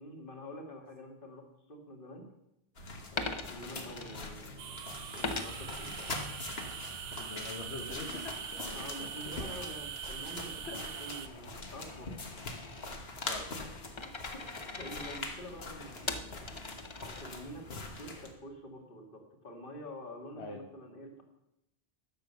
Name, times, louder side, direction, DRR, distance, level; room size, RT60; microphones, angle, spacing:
voice 1, 0.0-2.3 3.1-6.0 8.7-12.3 14.3-14.4 14.8-16.3 17.0-21.2, equal, 55° left, 2 dB, 2.1 m, -47 dB
sound 1, 2.8-18.3, left 2 dB, 70° left, 1.6 m, -43 dB
Coin (dropping), 3.2-4.8 5.2-6.8 7.2-17.6, left 3 dB, 30° left, 0.7 m, -43 dB
sound 2, 4.6-11.3, right 8 dB, 70° right, 0.9 m, -43 dB
voice 2, 7.2-9.1 10.7-10.8 13.2-13.5 20.4-20.6, left 3 dB, 85° left, 2 dB, 1.4 m, -44 dB
11.5 x 6.7 x 6.8 m, 0.86 s
omnidirectional pair, 1.1 m